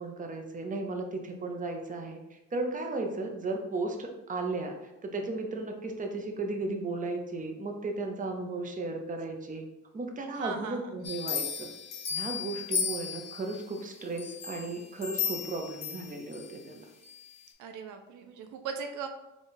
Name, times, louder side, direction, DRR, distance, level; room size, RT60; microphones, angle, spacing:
voice 1, 0.0-9.6 9.9-11.7 12.1-16.9, right 2 dB, 25° right, 3 dB, 0.7 m, -35 dB
voice 2, 10.4-10.9 17.6-19.1, right 6 dB, 80° right, 6 dB, 0.5 m, -38 dB
sound 1, 11.0-13.6 14.2-16.5 17.0-17.1, left 6 dB, 60° left, 0.9 m, -35 dB
3.9 x 2.4 x 4.0 m, 0.95 s
cardioid pair, 90°, 30 cm